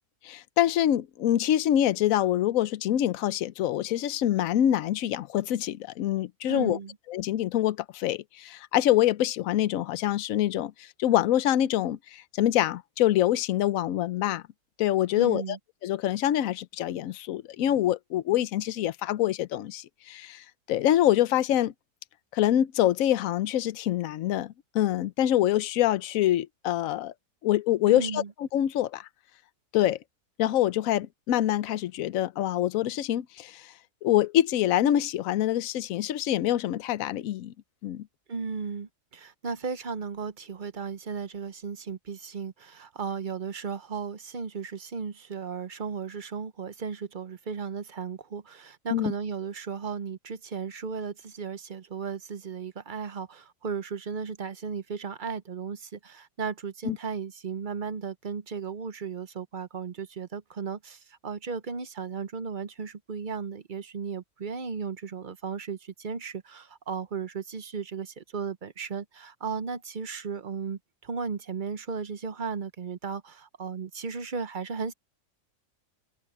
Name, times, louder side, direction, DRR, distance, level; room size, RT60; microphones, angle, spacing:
voice 1, 0.2-6.8 7.1-14.4 14.8-15.4 15.8-21.7 22.3-27.1 27.4-29.1 29.7-30.0 30.4-33.7 34.0-37.5 37.8-38.1 48.9-49.1 56.9-57.0, left 12 dB, 65° left, 1.0 m, -25 dB
voice 2, 6.5-7.0 15.2-15.6 27.9-28.3 38.3-74.9, right 5 dB, 45° right, 0.7 m, -35 dB
omnidirectional pair, 1.7 m